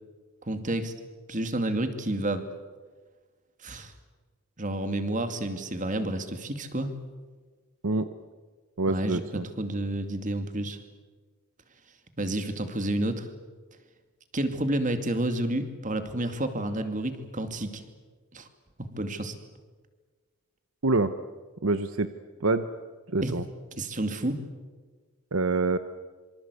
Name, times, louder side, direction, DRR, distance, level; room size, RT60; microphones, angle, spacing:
voice 1, 0.4-0.9 1.3-2.5 3.6-3.9 4.6-7.0 8.9-10.8 12.2-13.3 14.3-17.8 18.3-18.5 18.8-19.3 23.2-23.4 23.8-24.4, right 1 dB, 35° right, 8 dB, 2.4 m, -30 dB
voice 2, 8.8-9.5 20.8-21.1 21.6-22.1 22.4-22.7 23.1-23.4 25.3-25.8, right 3 dB, 65° right, 11 dB, 1.0 m, -25 dB
26.0 x 25.0 x 8.3 m, 1.4 s
head